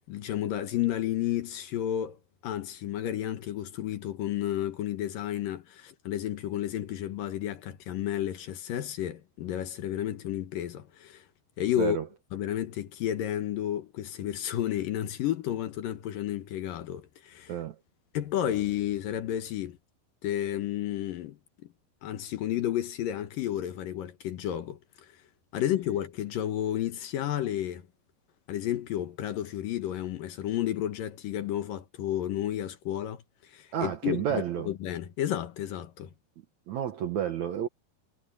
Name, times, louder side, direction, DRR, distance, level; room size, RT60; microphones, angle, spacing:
voice 1, 0.1-2.2 2.4-11.3 11.6-12.0 12.3-17.6 18.1-19.8 20.2-21.7 22.0-25.1 25.5-27.9 28.5-36.1, left 12 dB, 65° left, 2.6 m, -32 dB
voice 2, 33.7-34.7 36.7-37.7, right 9 dB, 70° right, 1.8 m, -30 dB
omnidirectional pair, 4.7 m